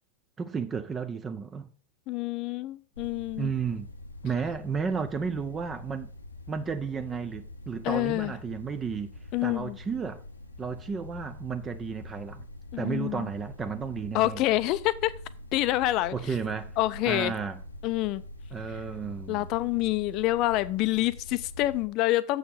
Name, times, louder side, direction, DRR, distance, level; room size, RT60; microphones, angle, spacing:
voice 1, 0.4-1.7 3.4-3.9 4.2-6.1 6.5-9.1 9.4-10.2 10.6-12.4 12.8-14.4 16.1-16.8 17.1-17.6 18.5-19.5, right 6 dB, 20° right, 0.5 m, -33 dB
voice 2, 2.1-3.5 7.8-8.3 9.3-9.8 12.7-13.3 14.1-15.1 15.5-16.1 16.8-17.3 17.8-18.2 19.3-22.4, left 16 dB, 40° left, 0.5 m, -27 dB
sound 1, 3.0-21.9, left 1 dB, 80° left, 0.8 m, -44 dB
7.7 x 6.5 x 4.9 m
figure-of-eight pair, 90°, 0 cm